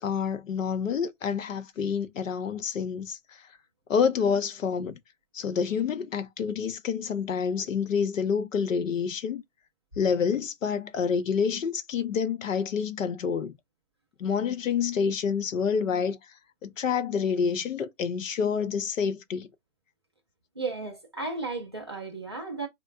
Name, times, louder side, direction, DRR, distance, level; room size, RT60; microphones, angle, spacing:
voice 1, 0.0-3.2 3.9-5.0 5.3-9.4 10.0-13.6 14.2-16.2 16.6-19.5, left 6 dB, 65° left, 0.7 m, -28 dB
voice 2, 20.6-22.7, right 3 dB, 20° right, 0.4 m, -34 dB
4.3 x 2.1 x 2.4 m
hypercardioid pair, 150°, 42 cm